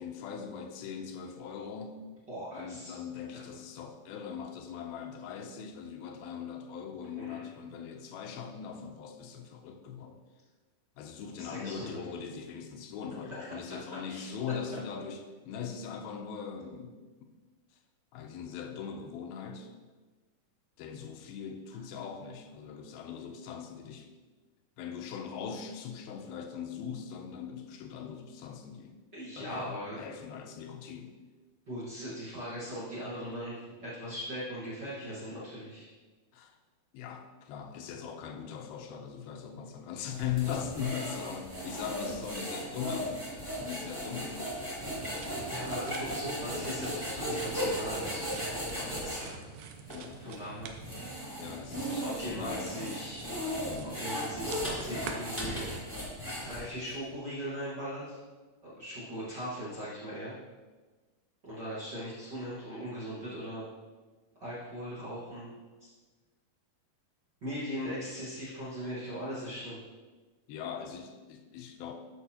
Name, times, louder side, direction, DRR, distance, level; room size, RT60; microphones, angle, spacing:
voice 1, 0.0-2.0 2.5-10.2 11.0-17.0 18.1-19.7 20.8-24.1 24.8-29.0 29.4-31.2 36.3-36.6 36.9-43.1 43.6-45.3 46.5-46.8 48.7-49.1 49.9-50.2 51.4-53.1 53.7-54.0 70.5-71.9, left 7 dB, 80° left, 6 dB, 2.4 m, -40 dB
voice 2, 2.3-2.9 3.3-3.6 7.2-7.5 11.4-12.0 14.1-14.3 29.1-30.0 31.7-35.9 41.6-41.8 45.5-48.4 49.0-49.5 50.2-50.7 52.0-53.3 53.8-55.7 56.4-58.2 58.6-60.4 61.4-63.7 64.4-65.5 65.8-65.9 67.4-69.8, equal, 50° right, -9 dB, 1.2 m, -39 dB
sound 1, 40.1-49.2 49.9-50.0 50.6-56.9, equal, 15° right, 0.7 m, -36 dB
sound 2, 44.9-55.2, right 7 dB, 85° right, 1.8 m, -48 dB
10.5 x 6.2 x 2.8 m, 1.3 s
omnidirectional pair, 4.4 m